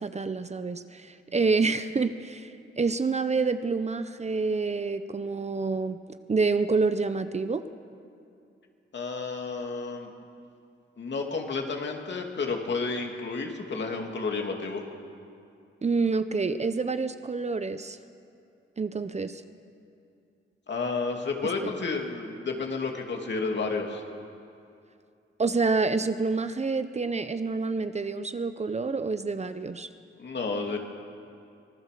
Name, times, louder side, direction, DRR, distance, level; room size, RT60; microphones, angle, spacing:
voice 1, 0.0-7.6 15.8-18.0 18.8-19.4 21.6-21.7 25.4-29.9, right 4 dB, 30° right, 11 dB, 0.7 m, -28 dB
voice 2, 8.9-10.1 11.0-14.8 20.7-24.0 30.2-30.8, left 4 dB, 60° left, 2 dB, 2.7 m, -31 dB
24.5 x 19.0 x 6.8 m, 2.5 s
wide cardioid pair, 130°, 21 cm